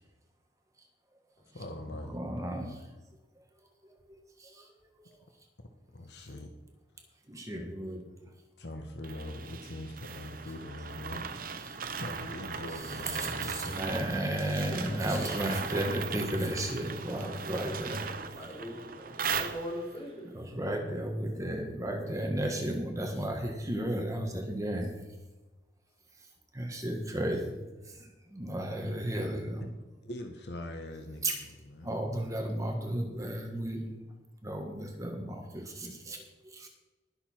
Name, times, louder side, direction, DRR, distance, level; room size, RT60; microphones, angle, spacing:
voice 1, 1.5-2.2 5.6-6.5 8.6-11.3 11.9-14.2 30.0-32.0, left 1 dB, 65° left, 5 dB, 1.1 m, -42 dB
voice 2, 2.1-2.9 3.8-4.7 5.0-5.1 7.3-8.0 11.7-11.8 13.1-18.1 20.3-24.9 26.5-29.6 31.2-31.3 31.8-33.9 34.4-36.7, right 1 dB, 20° right, 2 dB, 1.5 m, -34 dB
sound 1, 9.0-20.0, right 6 dB, 50° right, 0.9 m, -38 dB
voice 3, 14.4-15.2 16.1-16.2 16.9-17.0 18.2-20.3, equal, 35° left, -1 dB, 3.4 m, -41 dB
19.5 x 6.8 x 4.4 m, 1.1 s
head